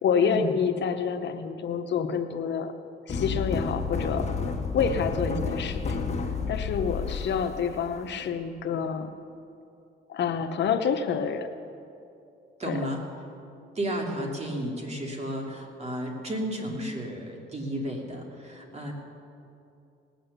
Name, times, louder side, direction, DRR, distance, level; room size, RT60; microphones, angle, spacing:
voice 1, 0.0-2.7 3.1-4.3 4.7-6.0 6.5-9.1 10.1-11.5 12.7-12.8, left 6 dB, 65° left, 8 dB, 0.9 m, -28 dB
sound 1, 3.1-8.3, left 5 dB, 35° left, 1.7 m, -31 dB
voice 2, 12.6-13.0 13.7-18.9, right 1 dB, 35° right, 0 dB, 2.8 m, -33 dB
19.0 x 7.7 x 6.7 m, 2.6 s
cardioid pair, 90°, 20 cm